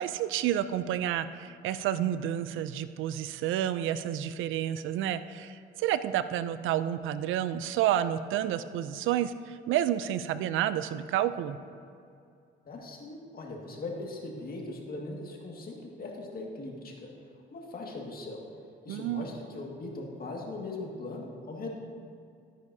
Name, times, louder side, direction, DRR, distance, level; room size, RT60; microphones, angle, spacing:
voice 1, 0.0-11.6 18.9-19.2, right 11 dB, 85° right, 13 dB, 0.4 m, -30 dB
voice 2, 12.7-17.1 17.5-18.5 18.8-21.8, left 2 dB, 50° left, -1 dB, 1.9 m, -40 dB
13.0 x 9.8 x 2.7 m, 2.4 s
cardioid pair, 90°, 20 cm